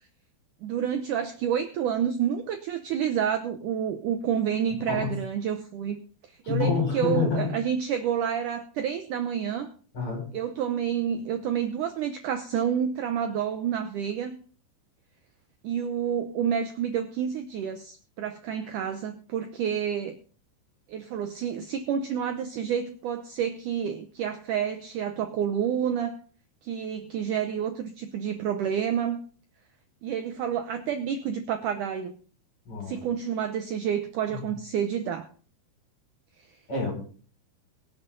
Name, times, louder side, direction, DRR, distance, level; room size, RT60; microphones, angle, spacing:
voice 1, 0.6-6.0 6.5-9.7 10.3-14.4 15.6-20.1 20.9-26.2 26.6-29.2 30.0-32.1 32.9-35.3, right 8 dB, 75° right, 7 dB, 1.9 m, -29 dB
voice 2, 6.4-7.5 9.9-10.3 32.7-33.0 34.3-34.4 36.7-36.9, left 5 dB, 30° left, 1 dB, 6.4 m, -27 dB
23.0 x 7.8 x 3.9 m, 0.42 s
omnidirectional pair, 4.7 m